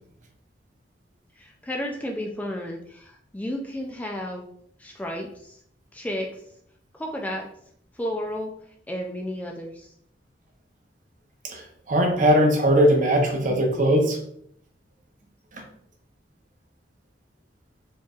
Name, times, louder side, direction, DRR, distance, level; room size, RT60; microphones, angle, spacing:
voice 1, 1.4-4.5 4.8-5.6 5.9-6.3 6.9-7.5 7.9-8.5 8.9-9.9, equal, 10° left, 0 dB, 0.3 m, -32 dB
voice 2, 11.9-14.2 15.5-15.6, equal, 45° right, 3 dB, 0.7 m, -19 dB
4.3 x 3.1 x 2.4 m, 0.68 s
head